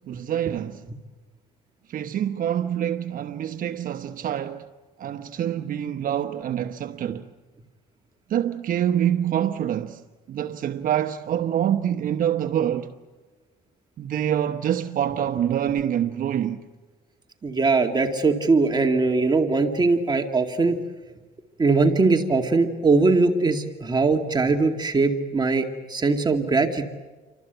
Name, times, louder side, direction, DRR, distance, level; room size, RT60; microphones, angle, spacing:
voice 1, 0.1-0.8 1.9-4.6 5.0-7.2 8.3-10.0 10.3-12.9 14.0-16.6, right 10 dB, 55° right, 1.1 m, -26 dB
voice 2, 17.4-20.8 21.6-26.8, right 3 dB, 25° right, 2.1 m, -21 dB
29.5 x 25.0 x 8.1 m
cardioid pair, 110°, 17 cm